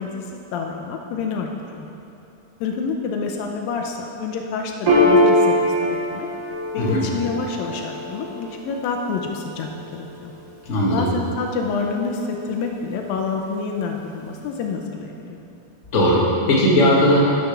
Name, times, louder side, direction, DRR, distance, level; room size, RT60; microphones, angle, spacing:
voice 1, 0.0-1.9 2.6-6.3 6.7-10.3 10.9-15.4, left 4 dB, 80° left, 2 dB, 2.2 m, -28 dB
Piano, 4.9-11.8, left 1 dB, 75° right, 3.5 m, -23 dB
voice 2, 10.6-11.1 15.9-17.2, equal, 45° left, -5 dB, 1.0 m, -17 dB
9.4 x 6.6 x 6.0 m, 2.9 s
omnidirectional pair, 4.4 m